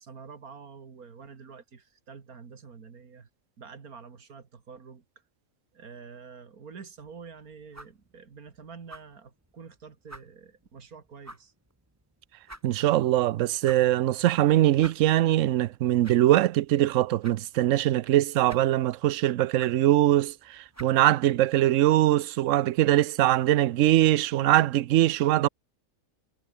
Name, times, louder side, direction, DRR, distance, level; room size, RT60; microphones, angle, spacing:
voice 1, 0.0-3.3 3.6-5.0 5.7-11.5, right 5 dB, 90° right, 2.5 m, -47 dB
sound 1, 7.0-21.8, right 1 dB, 10° right, 2.4 m, -53 dB
voice 2, 12.6-25.5, right 14 dB, 70° right, 0.9 m, -22 dB
omnidirectional pair, 1.5 m